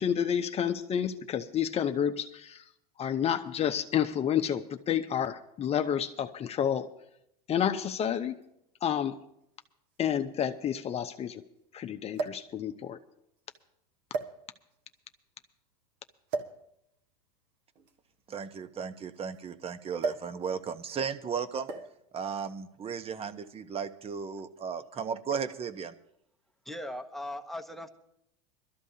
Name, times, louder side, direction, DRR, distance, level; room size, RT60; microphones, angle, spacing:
voice 1, 0.0-2.6 3.0-6.9 7.5-8.4 8.8-9.2 10.0-11.4 11.7-13.0, left 9 dB, 30° left, 7 dB, 0.7 m, -30 dB
sound 1, 8.4-8.5 9.6-9.7 10.0-10.1 12.1-12.5 13.4-13.6 14.1-14.8 16.3-16.6 17.8-19.4 20.0-20.4 20.6-20.9 21.7-22.1 23.0-23.3, right 4 dB, 55° right, 1.6 m, -36 dB
voice 2, 18.3-21.7 22.1-25.9, right 6 dB, 30° right, 10 dB, 1.0 m, -35 dB
voice 3, 26.6-27.9, left 1 dB, ahead, 8 dB, 1.1 m, -39 dB
22.5 x 13.0 x 2.8 m, 0.76 s
hypercardioid pair, 100°, 20 cm